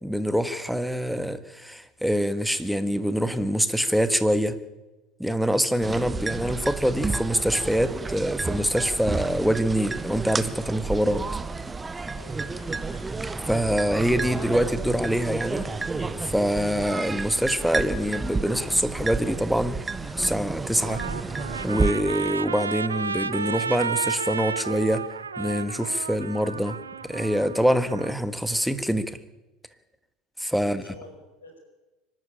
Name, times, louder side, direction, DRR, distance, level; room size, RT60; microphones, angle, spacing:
voice 1, 0.0-4.6 5.2-11.2 13.5-19.8 20.2-21.0 21.6-25.1 25.4-26.8 27.0-29.2 30.4-30.8, equal, ahead, 11 dB, 1.6 m, -25 dB
sound 1, 5.8-21.9, right 4 dB, 15° right, 1.1 m, -31 dB
voice 2, 12.1-12.8 30.6-31.6, left 1 dB, 80° left, 4 dB, 5.0 m, -47 dB
Trumpet, 20.7-28.1, right 6 dB, 80° right, 0.7 m, -32 dB
24.5 x 12.5 x 8.9 m, 1.1 s
figure-of-eight pair, 70°, 0 cm